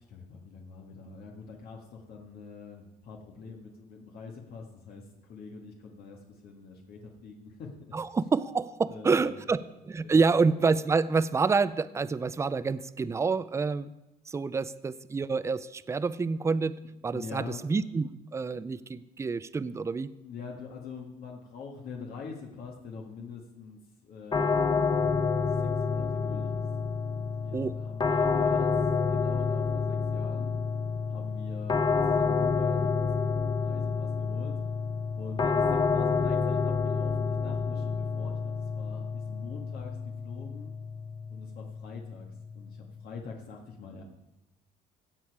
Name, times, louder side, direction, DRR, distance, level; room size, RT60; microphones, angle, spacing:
voice 1, 0.0-7.9 8.8-9.4 10.0-10.4 17.1-17.6 19.0-19.1 20.2-24.9 25.6-26.6 27.1-28.8 29.1-30.5 31.1-34.6 35.2-40.0 40.2-40.7 41.3-42.3 42.5-44.0, left 5 dB, 65° left, 0 dB, 1.7 m, -45 dB
voice 2, 7.9-13.9 14.3-20.1 27.5-27.8, right 4 dB, 15° right, 16 dB, 0.4 m, -28 dB
sound 1, 24.3-43.2, left 5 dB, 25° left, 0.8 m, -29 dB
16.5 x 7.0 x 4.7 m, 0.93 s
cardioid pair, 110°, 17 cm